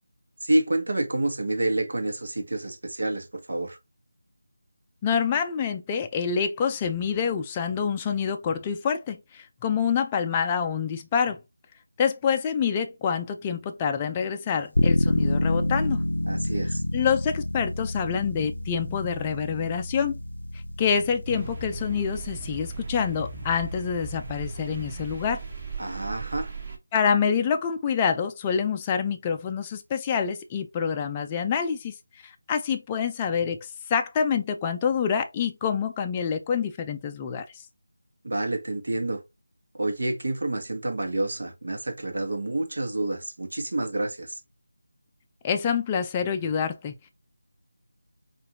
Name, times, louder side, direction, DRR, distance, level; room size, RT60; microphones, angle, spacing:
voice 1, 0.4-3.8 16.3-16.8 25.8-26.5 38.2-39.2 39.7-44.4, right 2 dB, 70° right, 1.1 m, -28 dB
voice 2, 5.0-11.4 12.0-16.0 16.9-20.2 20.8-25.4 26.9-31.9 32.2-33.6 33.9-37.4 45.4-46.9, left 7 dB, 15° left, 0.4 m, -26 dB
sound 1, 14.7-25.5, left 1 dB, 85° left, 0.4 m, -30 dB
sound 2, 21.2-26.8, right 3 dB, 35° right, 1.1 m, -37 dB
4.7 x 2.5 x 2.7 m
figure-of-eight pair, 165°, 0 cm